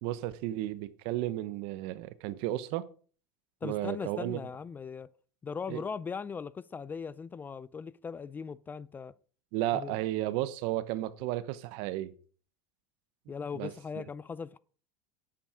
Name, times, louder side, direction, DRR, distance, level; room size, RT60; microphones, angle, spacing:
voice 1, 0.0-2.9 3.6-4.4 5.7-5.8 9.5-12.1 13.5-13.7, right 14 dB, 65° right, 1.0 m, -33 dB
voice 2, 3.6-5.1 5.4-9.1 9.7-10.0 13.3-14.6, left 5 dB, 20° left, 0.4 m, -39 dB
10.0 x 8.8 x 4.9 m
supercardioid pair, 130°, 10 cm